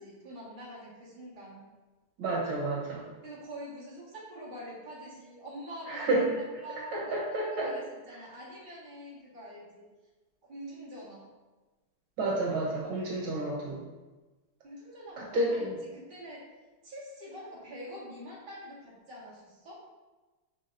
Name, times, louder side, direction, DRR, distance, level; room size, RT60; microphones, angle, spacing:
voice 1, 0.0-1.7 3.2-9.9 10.4-11.3 14.6-15.6 15.9-16.4 16.8-19.7, equal, 25° right, -6 dB, 1.8 m, -45 dB
voice 2, 2.2-3.1 5.9-6.4 6.9-7.7 8.1-8.3 12.2-13.8 15.2-15.8, right 2 dB, 70° right, -3 dB, 1.9 m, -30 dB
9.8 x 4.1 x 2.6 m, 1.2 s
omnidirectional pair, 2.4 m